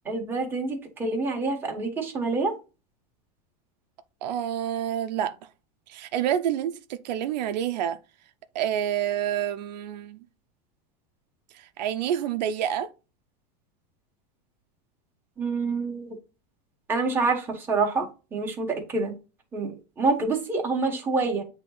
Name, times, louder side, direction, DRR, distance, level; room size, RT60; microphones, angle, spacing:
voice 1, 0.1-2.5 15.4-16.2 16.9-18.1 18.3-19.1 19.5-21.4, right 3 dB, 10° right, 1.4 m, -27 dB
voice 2, 4.2-5.4 5.9-8.0 8.5-10.2 11.5-12.9, right 10 dB, 80° right, 0.7 m, -28 dB
8.4 x 3.1 x 3.9 m
supercardioid pair, 165°, 21 cm